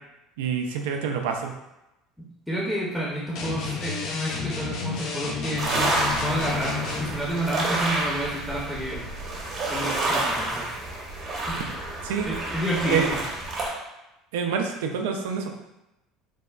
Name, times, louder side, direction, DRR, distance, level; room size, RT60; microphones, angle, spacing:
voice 1, 0.4-1.5 12.0-12.3 12.9-13.1 14.3-15.5, right 6 dB, 75° right, 4 dB, 0.3 m, -27 dB
voice 2, 2.5-5.6 6.2-9.0 9.7-10.7 11.5-11.6 12.3-13.3, right 1 dB, 5° left, -6 dB, 0.7 m, -30 dB
sound 1, 3.3-7.2, left 4 dB, 60° left, 0.5 m, -31 dB
sound 2, 5.6-13.7, right 2 dB, 45° right, 0.9 m, -29 dB
3.3 x 2.1 x 2.3 m, 0.94 s
hypercardioid pair, 70°, 0 cm